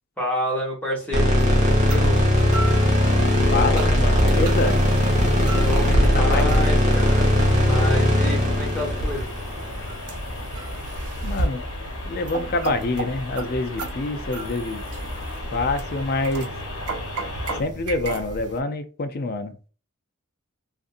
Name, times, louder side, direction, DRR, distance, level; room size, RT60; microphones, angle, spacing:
voice 1, 0.2-2.2 5.6-9.3, equal, 5° left, 1.2 m, -29 dB
sound 1, 1.1-10.3, left 1 dB, 35° right, 1.0 m, -19 dB
sound 2, 1.4-18.6, right 1 dB, 90° right, 0.5 m, -31 dB
sound 3, 2.5-17.6, left 2 dB, 75° left, 1.0 m, -37 dB
voice 2, 3.5-4.8 5.8-6.5 11.2-11.6 12.1-14.8 15.5-16.5 17.5-19.7, left 2 dB, 45° left, 0.4 m, -26 dB
2.6 x 2.6 x 2.4 m
head